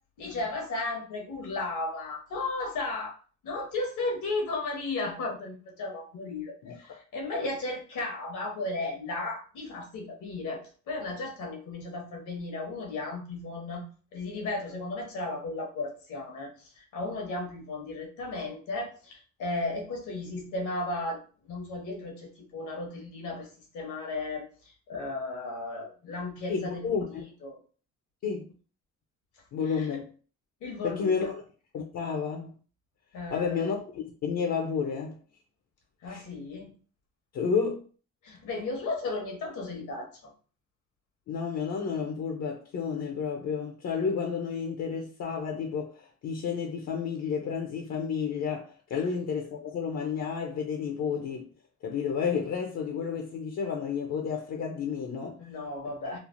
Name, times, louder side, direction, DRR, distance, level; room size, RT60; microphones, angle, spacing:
voice 1, 0.2-3.1 3.4-13.8 14.1-26.9 27.4-27.6 29.7-29.9 30.6-31.3 33.1-33.6 36.0-36.7 38.2-40.3 55.4-56.2, left 2 dB, 80° left, 1.1 m, -35 dB
voice 2, 6.6-7.0 26.5-27.2 28.2-28.5 29.5-30.1 30.8-31.4 31.7-32.5 33.3-35.2 36.1-36.2 37.3-37.8 41.3-51.5 51.8-55.4, left 6 dB, 60° left, 0.6 m, -31 dB
3.2 x 2.0 x 2.5 m
cardioid pair, 90°, 30 cm